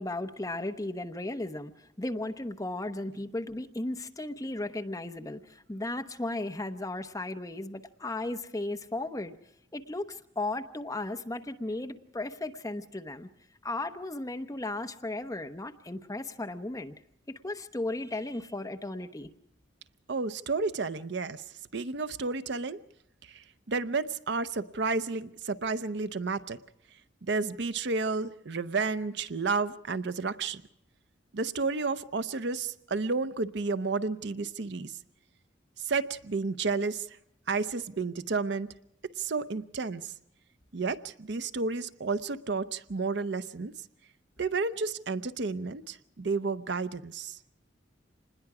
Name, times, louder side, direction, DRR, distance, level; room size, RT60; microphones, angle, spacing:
voice 1, 0.0-9.3 9.7-13.3 13.6-16.9 17.3-19.3, left 2 dB, 15° left, 6 dB, 0.9 m, -35 dB
voice 2, 20.1-21.4 21.7-22.8 23.3-26.6 27.2-30.6 31.3-34.9 35.8-37.1 37.5-38.7 39.2-40.1 40.7-43.7 44.4-47.4, right 4 dB, 60° right, 13 dB, 0.7 m, -31 dB
26.5 x 20.5 x 4.8 m, 0.80 s
head